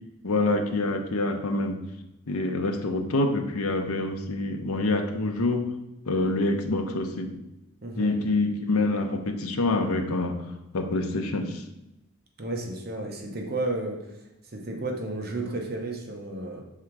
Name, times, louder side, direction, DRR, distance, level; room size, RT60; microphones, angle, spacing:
voice 1, 0.2-1.8 2.3-5.7 6.1-7.3 8.0-10.5 10.7-11.6, left 2 dB, 90° left, 6 dB, 0.7 m, -26 dB
voice 2, 7.8-8.2 12.4-14.2 14.5-16.6, right 2 dB, 45° right, 1 dB, 0.8 m, -32 dB
5.5 x 3.7 x 4.6 m, 0.95 s
head